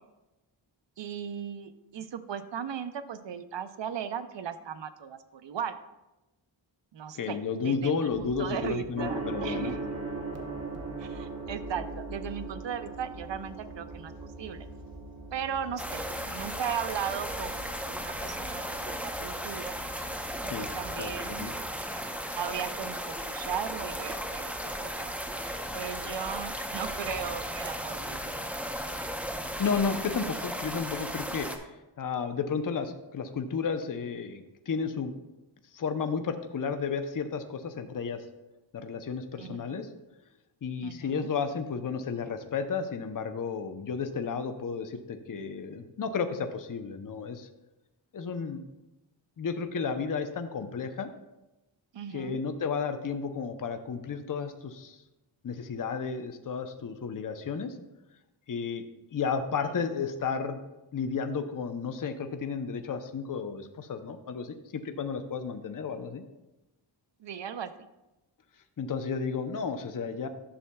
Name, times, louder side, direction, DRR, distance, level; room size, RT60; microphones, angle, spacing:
voice 1, 1.0-5.8 6.9-8.1 8.4-10.0 11.0-14.7 15.3-19.8 20.6-21.5 22.3-25.1 25.7-28.5 39.4-39.8 40.8-41.3 51.9-52.4 59.5-59.8 67.2-67.7, right 8 dB, 65° right, 11 dB, 0.6 m, -37 dB
voice 2, 7.1-9.7 20.5-20.7 21.0-21.5 29.6-35.1 35.7-38.2 38.7-39.9 40.6-47.5 48.1-48.6 49.4-51.1 52.1-55.0 55.4-57.8 58.5-58.8 59.1-60.7 60.9-66.2 68.8-70.3, left 5 dB, 45° left, 8 dB, 0.6 m, -32 dB
sound 1, 8.1-21.7, left 2 dB, 65° left, 2.3 m, -48 dB
Gong, 9.0-19.8, right 3 dB, 30° right, 1.0 m, -41 dB
sound 2, 15.8-31.6, equal, 5° right, 0.7 m, -36 dB
11.0 x 6.6 x 2.2 m, 0.99 s
wide cardioid pair, 70°, 47 cm